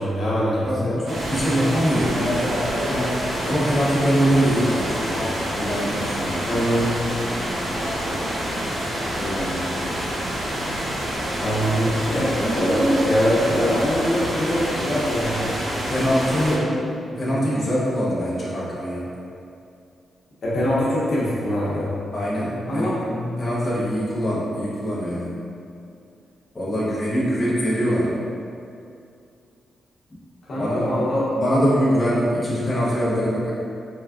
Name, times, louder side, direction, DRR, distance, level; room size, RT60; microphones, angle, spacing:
voice 1, 0.0-1.0 2.4-2.8 5.1-5.7 6.4-7.0 7.7-8.3 11.4-15.5 16.5-16.8 17.3-17.4 20.4-21.9 22.7-22.9 30.5-31.2, equal, 55° left, -8 dB, 0.8 m, -23 dB
voice 2, 0.6-2.6 2.9-5.2 5.6-6.4 8.8-9.8 15.9-16.6 17.2-19.1 22.1-25.4 26.5-28.3 30.6-31.1 31.4-33.5, equal, 20° left, -10 dB, 0.7 m, -23 dB
sound 1, 1.0-16.6, equal, 50° right, 0.7 m, -27 dB
4.3 x 2.3 x 2.4 m, 2.5 s
wide cardioid pair, 150°, 0 cm